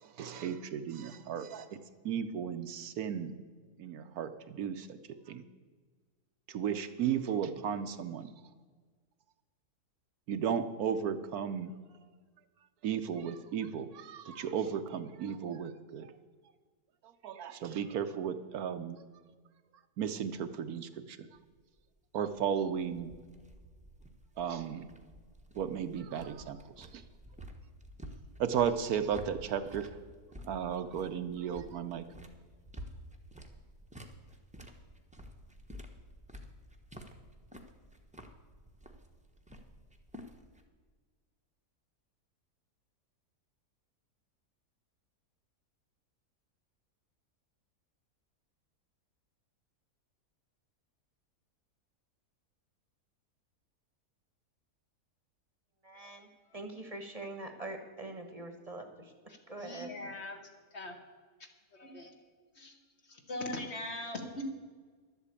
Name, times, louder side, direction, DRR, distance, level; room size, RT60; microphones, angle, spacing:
voice 1, 0.0-1.7 2.0-3.3 3.8-5.0 5.3-5.4 6.5-8.3 10.3-11.7 12.8-16.1 17.2-19.0 20.0-21.3 22.1-23.1 24.4-24.9 25.5-27.0 28.4-29.9 30.4-32.0, right 8 dB, 70° right, 9 dB, 1.1 m, -35 dB
sound 1, 21.4-40.6, equal, 5° right, 0.8 m, -51 dB
voice 2, 55.8-56.3 56.5-59.1 59.5-59.9, right 2 dB, 25° right, 6 dB, 1.1 m, -43 dB
voice 3, 59.3-60.4 60.7-61.0 61.7-62.1 62.5-62.8 63.0-64.4, left 1 dB, 45° left, 4 dB, 1.5 m, -41 dB
12.0 x 8.2 x 8.3 m, 1.5 s
omnidirectional pair, 1.7 m